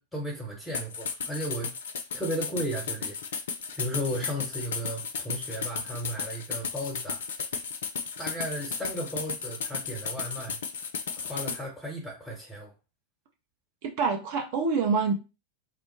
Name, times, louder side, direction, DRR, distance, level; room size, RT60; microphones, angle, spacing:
voice 1, 0.0-3.2 3.7-7.2 8.2-10.6 11.2-12.7, equal, ahead, 0.9 m, -35 dB
sound 1, 0.7-11.6, left 6 dB, 60° left, 0.3 m, -34 dB
voice 2, 13.8-15.1, right 5 dB, 50° right, 0.6 m, -26 dB
2.5 x 2.0 x 3.1 m
figure-of-eight pair, 90°, 0 cm